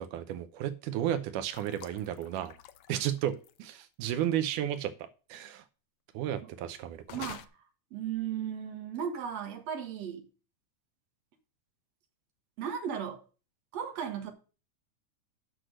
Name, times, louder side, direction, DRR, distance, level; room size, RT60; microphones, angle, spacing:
voice 1, 0.0-2.5 2.9-4.9 5.3-5.6 6.1-7.0, right 11 dB, 90° right, 2.3 m, -33 dB
sound 1, 1.5-3.8 7.0-7.5, left 11 dB, 85° left, 1.4 m, -48 dB
voice 2, 7.1-7.5 7.9-10.2 12.6-13.2 13.7-14.3, right 8 dB, 60° right, 2.5 m, -36 dB
8.1 x 6.3 x 6.4 m
omnidirectional pair, 3.6 m